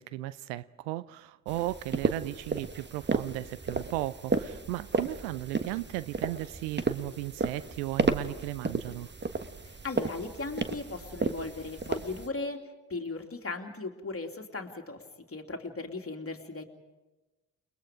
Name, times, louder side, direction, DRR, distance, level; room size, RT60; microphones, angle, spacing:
voice 1, 0.0-9.1, right 17 dB, 80° right, 0.6 m, -36 dB
sound 1, 1.5-12.3, right 4 dB, 20° right, 1.3 m, -33 dB
voice 2, 9.6-16.6, left 3 dB, 30° left, 2.8 m, -37 dB
29.5 x 21.0 x 5.1 m
hypercardioid pair, 40°, 48 cm